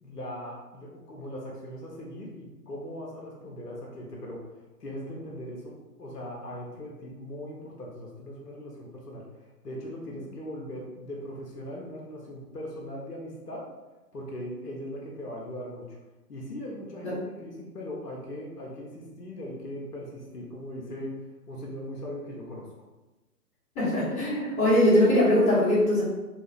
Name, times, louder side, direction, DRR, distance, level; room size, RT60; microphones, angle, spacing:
voice 1, 0.0-4.5 4.8-9.2 9.6-13.6 14.1-16.0 16.3-21.1 21.5-22.7, equal, 80° left, -2 dB, 1.1 m, -39 dB
voice 2, 23.7-26.0, left 1 dB, 15° left, -10 dB, 1.4 m, -21 dB
3.6 x 2.4 x 3.5 m, 1.1 s
figure-of-eight pair, 125°, 48 cm